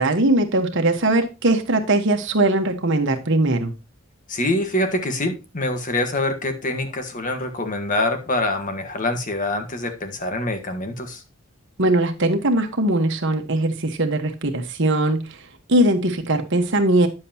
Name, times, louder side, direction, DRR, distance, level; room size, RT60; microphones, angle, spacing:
voice 1, 0.0-3.7 11.8-15.2 15.7-17.1, right 1 dB, 60° right, 1.4 m, -20 dB
voice 2, 4.3-11.2, left 1 dB, 40° left, 1.5 m, -25 dB
9.9 x 7.7 x 2.9 m
head